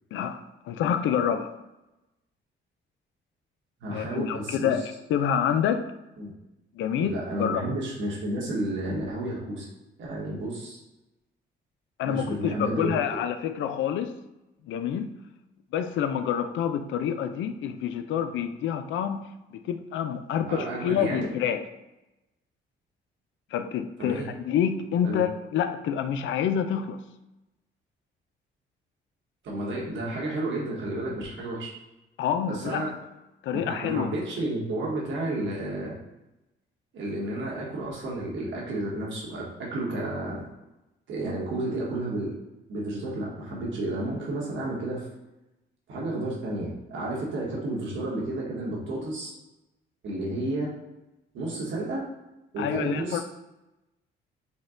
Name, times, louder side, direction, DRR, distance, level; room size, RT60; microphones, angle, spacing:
voice 1, 0.6-1.5 3.9-5.9 6.8-7.6 12.0-14.1 14.7-15.1 15.7-21.6 23.5-27.0 32.2-32.9 33.4-34.1 52.6-53.2, left 8 dB, 75° left, 9 dB, 0.4 m, -27 dB
voice 2, 3.8-4.7 6.2-6.3 6.9-9.7 10.0-10.8 12.0-12.9 20.3-21.3 24.0-24.3 25.0-25.2 29.4-31.7 32.5-32.9 33.5-35.9 36.9-40.4 41.1-42.3 42.7-45.1 45.9-49.3 50.0-50.7 51.3-52.0 52.5-53.2, right 1 dB, 75° right, -4 dB, 1.3 m, -31 dB
4.2 x 2.3 x 3.7 m, 0.97 s
cardioid pair, 90°, 20 cm